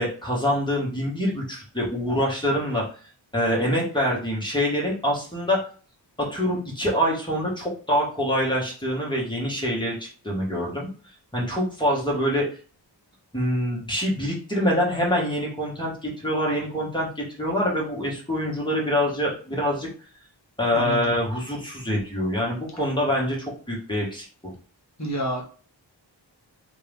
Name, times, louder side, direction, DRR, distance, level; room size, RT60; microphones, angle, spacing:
voice 1, 0.0-2.9 3.3-5.6 6.2-10.9 11.3-12.5 13.3-19.9 20.6-24.5, equal, 10° left, -4 dB, 1.8 m, -25 dB
voice 2, 20.7-21.1 25.0-25.4, right 1 dB, 35° left, 1 dB, 1.5 m, -29 dB
3.4 x 2.9 x 3.5 m, 0.40 s
wide cardioid pair, 50°, 47 cm